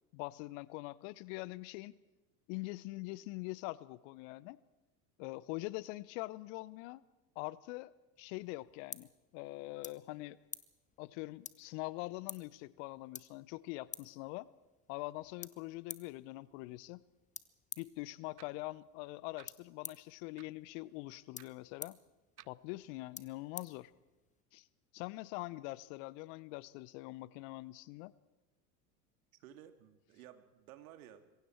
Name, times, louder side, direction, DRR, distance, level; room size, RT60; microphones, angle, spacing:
voice 1, 0.1-1.9 2.5-4.6 5.2-7.0 7.4-7.9 8.2-10.4 11.0-14.5 14.9-17.0 17.8-22.0 22.4-23.9 24.5-24.7 24.9-28.1, left 21 dB, 50° left, 20 dB, 0.9 m, -44 dB
sound 1, 8.2-24.4, left 6 dB, 15° left, 1.0 m, -53 dB
sound 2, 18.4-18.6 19.4-19.5 20.4-20.6 21.4-21.5 22.4-22.6, right 13 dB, 85° right, 0.6 m, -57 dB
voice 2, 29.3-31.4, right 11 dB, 65° right, 9 dB, 2.2 m, -56 dB
26.0 x 22.5 x 4.5 m, 1.1 s
hypercardioid pair, 80°, 47 cm